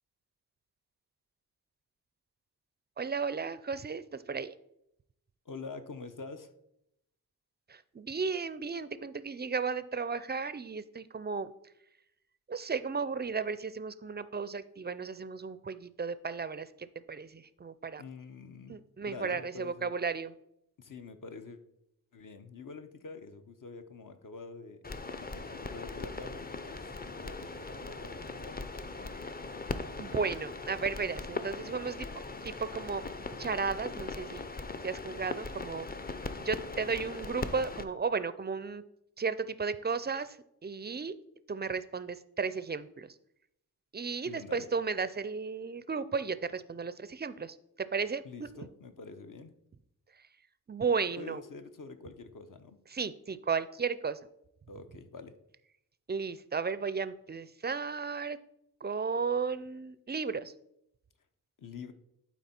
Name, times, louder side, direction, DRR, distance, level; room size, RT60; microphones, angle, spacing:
voice 1, 3.0-4.6 7.7-11.5 12.5-18.0 18.7-20.3 30.0-33.0 33.4-34.4 34.8-35.9 36.4-38.8 39.2-40.4 40.6-41.2 41.5-43.1 43.9-48.2 50.7-51.4 52.9-54.2 56.1-58.4 58.8-60.5, right 5 dB, 30° right, 14 dB, 0.4 m, -34 dB
voice 2, 5.4-6.5 18.0-18.8 19.1-20.0 20.8-21.6 22.1-24.8 25.2-26.9 27.2-28.7 44.3-44.7 48.2-49.5 51.2-52.8 54.7-55.3 61.6-61.9, left 4 dB, 55° left, 8 dB, 0.8 m, -46 dB
sound 1, 24.8-37.8, left 3 dB, 25° left, 0.5 m, -40 dB
11.5 x 4.5 x 4.3 m, 0.79 s
wide cardioid pair, 95°, 38 cm